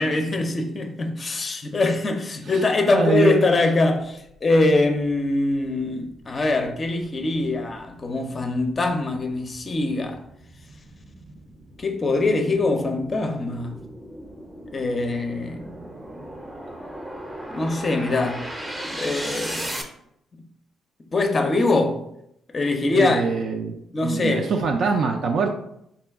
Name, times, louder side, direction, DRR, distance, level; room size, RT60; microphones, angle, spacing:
voice 1, 0.0-10.2 11.8-13.8 14.7-15.6 17.5-18.5 18.9-19.8 21.1-22.0 22.5-23.3 23.9-24.5, left 2 dB, 35° left, 0.5 m, -23 dB
voice 2, 2.9-3.4 22.9-25.5, right 5 dB, 60° right, 0.3 m, -24 dB
sound 1, 6.0-19.8, right 1 dB, 10° right, 0.6 m, -37 dB
3.8 x 2.2 x 3.4 m
cardioid pair, 90°, 0 cm